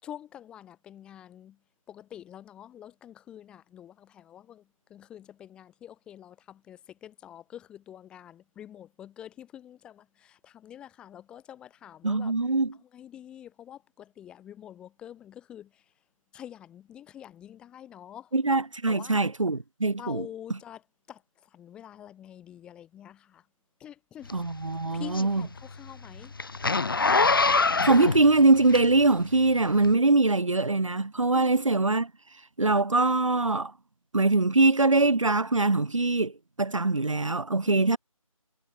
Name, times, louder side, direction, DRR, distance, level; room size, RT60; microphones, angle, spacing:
voice 1, 0.0-1.6 1.9-4.6 4.9-12.3 12.8-15.8 16.3-18.3 18.9-19.2 20.0-20.8 21.1-21.2 21.5-23.4 23.8-24.3 24.9-26.3 31.3-31.6 37.6-37.9, left 10 dB, 5° left, 1.7 m, -46 dB
voice 2, 12.0-12.7 18.3-20.3 24.3-25.5 27.8-32.1 32.6-33.7 34.1-36.3 36.6-38.0, right 3 dB, 60° right, 4.0 m, -23 dB
Zipper (clothing), 24.3-29.2 29.8-29.9, left 4 dB, 40° left, 0.5 m, -25 dB
figure-of-eight pair, 160°, 18 cm